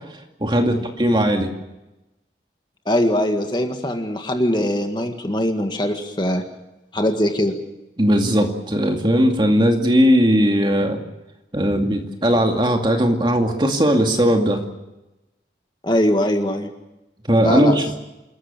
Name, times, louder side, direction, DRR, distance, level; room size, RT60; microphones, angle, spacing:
voice 1, 0.4-1.5 8.0-11.0 11.5-14.6 17.3-17.8, equal, 25° right, 3 dB, 2.4 m, -18 dB
voice 2, 2.9-6.4 6.9-7.6 15.8-16.7 17.4-17.8, left 1 dB, 25° left, 5 dB, 1.8 m, -21 dB
27.5 x 14.0 x 8.9 m, 0.98 s
head